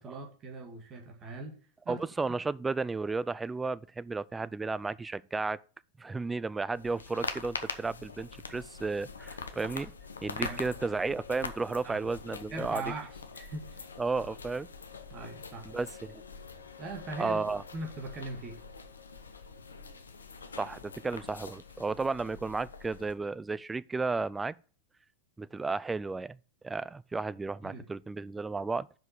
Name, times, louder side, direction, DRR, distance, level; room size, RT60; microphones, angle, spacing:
voice 1, 0.0-1.5 1.8-2.0 10.3-10.6 11.8-12.0 12.5-13.9 15.1-15.7 16.8-17.4 17.7-18.6 27.6-27.9, right 3 dB, 30° right, 2.2 m, -40 dB
voice 2, 1.9-5.6 6.0-9.9 10.2-12.8 14.0-14.7 15.7-16.2 17.2-17.6 20.6-24.5 25.4-26.4 26.6-29.0, right 3 dB, 10° right, 0.3 m, -33 dB
sound 1, 6.7-23.1, left 4 dB, 70° left, 0.9 m, -43 dB
5.9 x 5.1 x 6.7 m
figure-of-eight pair, 90°, 0 cm